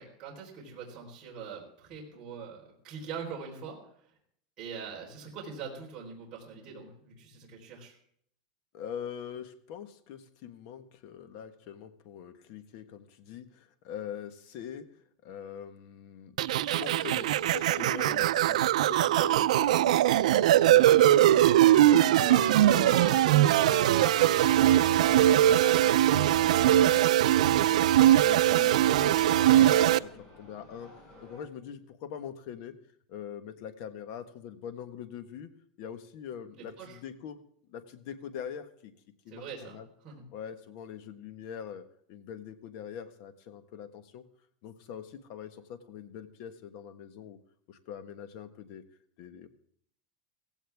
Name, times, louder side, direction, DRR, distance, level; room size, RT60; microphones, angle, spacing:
voice 1, 0.0-3.9 4.6-8.0 21.8-22.3 36.5-37.0 39.3-40.2, right 6 dB, 25° right, -3 dB, 4.2 m, -43 dB
voice 2, 8.7-21.5 22.0-27.4 27.7-32.7 33.1-35.5 35.8-37.4 37.7-38.9 39.2-39.9 40.3-44.2 44.6-47.4 47.7-48.8 49.2-49.5, left 8 dB, 45° left, 11 dB, 1.4 m, -43 dB
sound 1, 16.4-30.0, right 13 dB, 90° right, 0.5 m, -21 dB
sound 2, 21.7-31.4, equal, 20° left, 6.4 m, -46 dB
16.5 x 16.0 x 3.5 m, 0.65 s
supercardioid pair, 175°, 4 cm